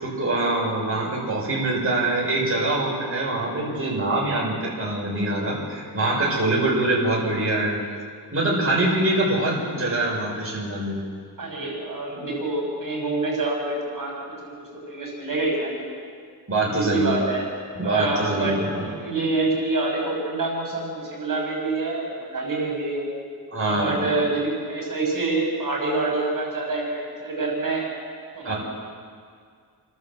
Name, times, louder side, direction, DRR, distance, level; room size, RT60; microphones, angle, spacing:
voice 1, 0.0-7.8 8.3-11.0 16.5-17.2 17.8-18.9 23.5-24.0 28.4-28.6, right 2 dB, 35° right, -4 dB, 6.5 m, -24 dB
voice 2, 11.4-14.1 14.4-14.5 14.9-16.0 16.6-17.4 17.8-23.1 23.6-27.9 28.3-28.6, right 3 dB, 55° right, -2 dB, 6.7 m, -26 dB
29.5 x 11.5 x 7.8 m, 2.1 s
cardioid pair, 85°, 40 cm